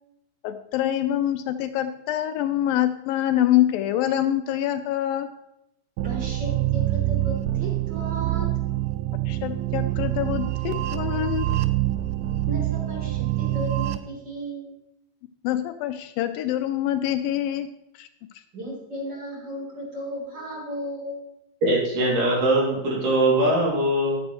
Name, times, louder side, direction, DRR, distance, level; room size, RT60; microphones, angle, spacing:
voice 1, 0.4-5.3 9.3-11.5 15.4-17.7 18.0-18.1, left 12 dB, 80° left, 9 dB, 2.2 m, -25 dB
voice 2, 6.0-8.5 12.5-14.7 18.5-21.2, equal, 30° right, -3 dB, 3.7 m, -35 dB
sound 1, 6.0-14.0, right 15 dB, 85° right, 1.8 m, -26 dB
voice 3, 21.6-24.2, right 1 dB, 60° right, -3 dB, 4.1 m, -21 dB
14.0 x 10.5 x 3.1 m, 0.82 s
omnidirectional pair, 4.2 m